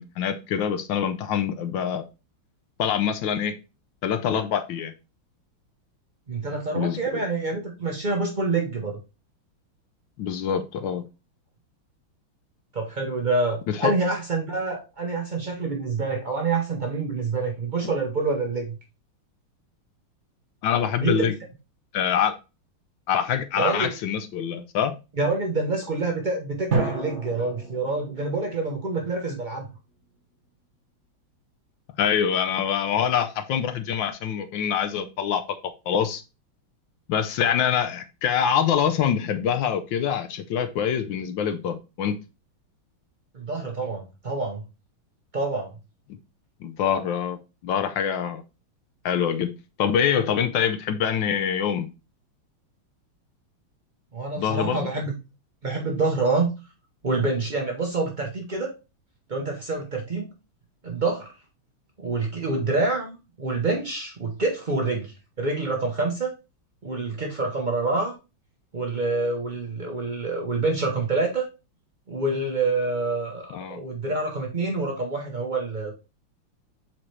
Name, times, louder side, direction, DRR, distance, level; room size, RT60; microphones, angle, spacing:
voice 1, 0.0-2.0 2.8-3.6 4.0-4.9 6.7-7.2 10.2-11.0 13.7-13.9 20.6-21.4 21.9-22.4 23.1-24.9 32.0-36.2 37.1-42.2 46.1-46.2 46.6-47.4 47.6-48.4 49.0-49.5 49.8-51.9 54.4-54.9 73.5-73.8, left 8 dB, 70° left, 8 dB, 1.3 m, -25 dB
voice 2, 6.3-9.0 12.7-18.8 21.0-21.3 23.6-23.9 25.2-29.7 43.3-44.6 45.3-45.7 54.1-55.1 55.6-56.5 57.0-58.7 59.3-60.3 60.8-61.3 62.0-66.3 66.8-68.2 68.7-71.5 72.1-75.9, right 3 dB, 60° right, 1 dB, 0.4 m, -27 dB
sound 1, 26.7-29.5, right 3 dB, 35° right, 1.6 m, -31 dB
7.4 x 4.3 x 3.2 m, 0.28 s
omnidirectional pair, 2.4 m